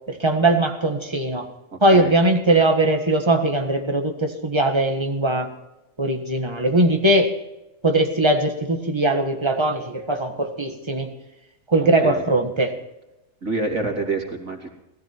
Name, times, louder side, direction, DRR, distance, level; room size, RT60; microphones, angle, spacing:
voice 1, 0.1-1.5 1.8-5.5 6.0-7.3 7.8-11.1 11.7-12.7, right 2 dB, 20° right, 4 dB, 1.6 m, -20 dB
voice 2, 11.8-12.2 13.4-14.7, right 3 dB, 90° right, 1 dB, 3.4 m, -27 dB
19.5 x 14.0 x 4.5 m, 0.95 s
omnidirectional pair, 1.4 m